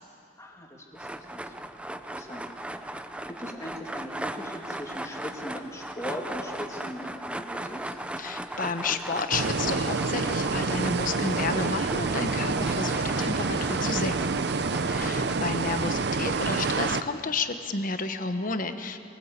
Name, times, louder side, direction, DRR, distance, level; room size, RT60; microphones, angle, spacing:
voice 1, 0.4-2.9 3.3-8.0 14.9-15.3, left 1 dB, 15° left, 0 dB, 2.6 m, -40 dB
sound 1, 1.0-15.4, right 1 dB, 5° right, 0.7 m, -37 dB
voice 2, 8.2-14.5 14.8-19.0, left 4 dB, 50° left, 8 dB, 1.2 m, -31 dB
sound 2, 9.3-17.0, right 4 dB, 65° right, 0.7 m, -27 dB
23.5 x 18.0 x 8.3 m, 2.6 s
head